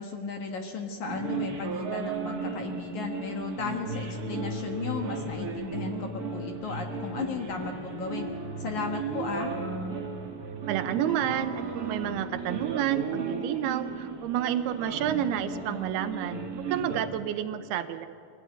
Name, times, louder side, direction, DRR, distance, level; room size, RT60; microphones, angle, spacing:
voice 1, 0.0-8.3 8.6-9.5, left 5 dB, 60° left, 3 dB, 2.3 m, -35 dB
sound 1, 1.1-17.0, right 4 dB, 55° right, 1.0 m, -35 dB
sound 2, 6.9-13.5, left 2 dB, 35° left, 5.0 m, -46 dB
voice 2, 10.7-18.1, right 11 dB, 80° right, 10 dB, 2.7 m, -30 dB
23.5 x 16.0 x 9.1 m, 2.4 s
omnidirectional pair, 4.6 m